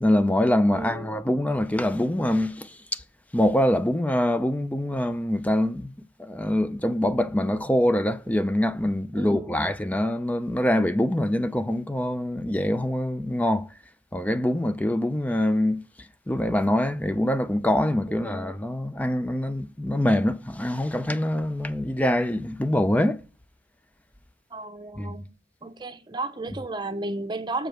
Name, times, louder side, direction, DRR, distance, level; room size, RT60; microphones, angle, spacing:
voice 1, 0.0-3.0 3.3-5.9 6.2-13.7 14.1-15.8 16.3-23.2 25.0-25.1, left 1 dB, 10° left, 0.5 m, -24 dB
voice 2, 0.7-1.1 9.2-9.6 18.1-18.4 24.5-25.2 25.6-27.7, right 2 dB, 25° right, 0.8 m, -33 dB
7.7 x 5.0 x 6.3 m
head